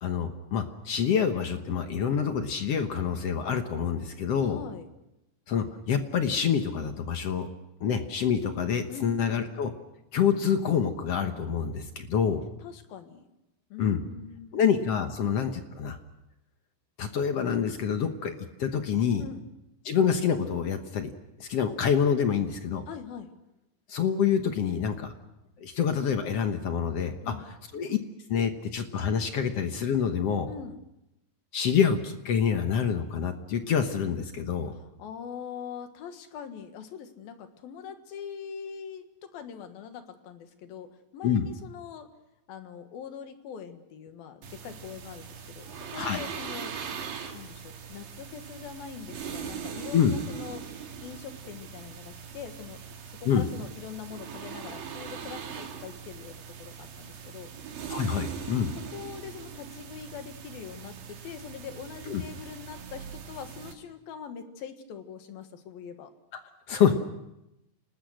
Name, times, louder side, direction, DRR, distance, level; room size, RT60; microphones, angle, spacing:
voice 1, 0.0-4.6 5.5-7.5 7.8-9.7 10.1-12.4 13.8-14.0 14.5-16.0 17.0-18.3 18.6-19.2 19.8-21.1 21.4-22.8 23.9-25.1 25.6-27.3 27.7-28.0 28.3-30.5 31.5-34.7 41.2-41.5 45.9-46.2 49.9-50.2 53.2-53.5 57.9-58.7 62.1-62.2 66.7-66.9, left 7 dB, 60° left, 7 dB, 1.7 m, -27 dB
voice 2, 4.4-4.9 8.9-9.5 12.6-13.3 13.7-14.8 15.2-15.3 19.2-19.5 22.9-23.3 27.2-27.5 30.5-30.8 34.7-42.1 42.5-46.7 47.3-50.7 51.0-52.8 53.2-57.5 58.9-66.1, left 7 dB, 85° left, 7 dB, 3.5 m, -43 dB
sound 1, 44.4-63.7, right 7 dB, 80° right, 4.0 m, -41 dB
29.0 x 19.5 x 6.4 m, 0.90 s
omnidirectional pair, 4.1 m